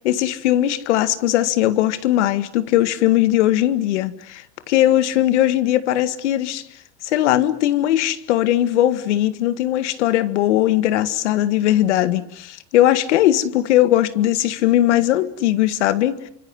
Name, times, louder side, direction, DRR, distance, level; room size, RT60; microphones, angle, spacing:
voice 1, 0.0-6.6 7.0-16.2, left 13 dB, 85° left, 2.0 m, -19 dB
29.0 x 25.0 x 8.0 m
supercardioid pair, 120°, 34 cm